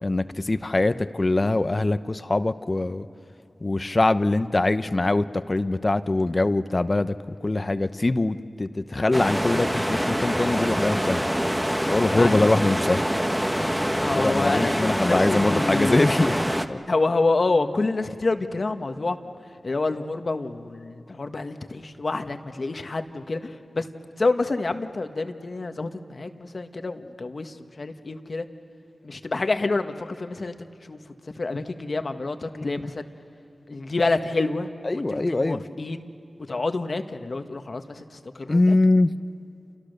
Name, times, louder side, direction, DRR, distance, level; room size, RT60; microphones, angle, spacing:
voice 1, 0.0-3.1 3.6-11.3 11.8-13.1 14.2-16.4 16.7-16.8 32.5-32.7 34.8-35.6 38.5-39.1, left 2 dB, 40° left, 12 dB, 0.9 m, -23 dB
sound 1, 9.1-16.7, equal, 5° right, 1.3 m, -25 dB
voice 2, 14.0-16.0 16.9-19.2 19.6-23.9 24.2-28.5 29.0-30.5 30.9-31.0 31.4-33.1 33.7-36.1 36.5-38.8, left 3 dB, 60° left, 7 dB, 1.5 m, -28 dB
29.0 x 29.0 x 6.7 m, 2.6 s
cardioid pair, 45°, 0 cm